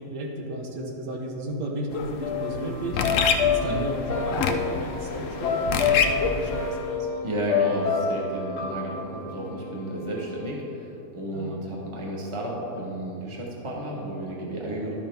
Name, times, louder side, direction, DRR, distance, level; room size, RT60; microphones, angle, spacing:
voice 1, 0.0-3.0 3.4-7.1 11.3-11.9, right 1 dB, 75° right, 1 dB, 1.5 m, -34 dB
sound 1, 1.9-6.8, left 5 dB, 65° left, 0.8 m, -28 dB
sound 2, 2.2-10.5, left 6 dB, 85° left, 2.1 m, -29 dB
voice 2, 7.2-15.0, right 1 dB, 20° right, -3 dB, 1.2 m, -32 dB
11.5 x 6.9 x 3.4 m, 2.9 s
omnidirectional pair, 1.8 m